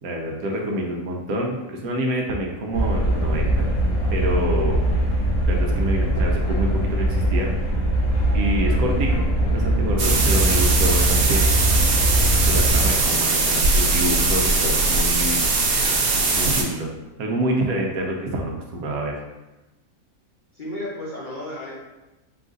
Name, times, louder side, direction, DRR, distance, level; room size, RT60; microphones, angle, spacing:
voice 1, 0.0-3.7 4.1-4.8 5.5-7.5 8.3-11.5 12.5-15.4 15.8-15.9 16.3-16.9 17.2-19.2, right 1 dB, 80° right, 0 dB, 1.2 m, -27 dB
sound 1, 2.7-12.9, right 1 dB, 60° left, 1.3 m, -21 dB
sound 2, 10.0-16.6, right 3 dB, 55° right, 0.7 m, -20 dB
voice 2, 20.5-21.7, left 1 dB, 40° left, -6 dB, 0.8 m, -33 dB
3.9 x 2.5 x 3.7 m, 1.0 s
omnidirectional pair, 1.5 m